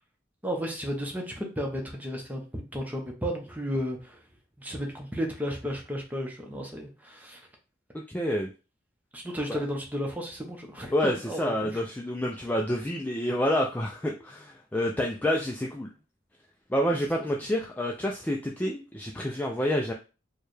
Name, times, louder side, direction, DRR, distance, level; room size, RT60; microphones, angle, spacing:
voice 1, 0.4-4.2 4.6-7.5 9.1-11.7, equal, 10° right, 1 dB, 0.8 m, -33 dB
voice 2, 7.9-8.5 9.5-9.6 10.9-15.9 16.7-19.9, equal, 10° left, 0 dB, 0.3 m, -28 dB
4.5 x 2.3 x 3.2 m, 0.32 s
head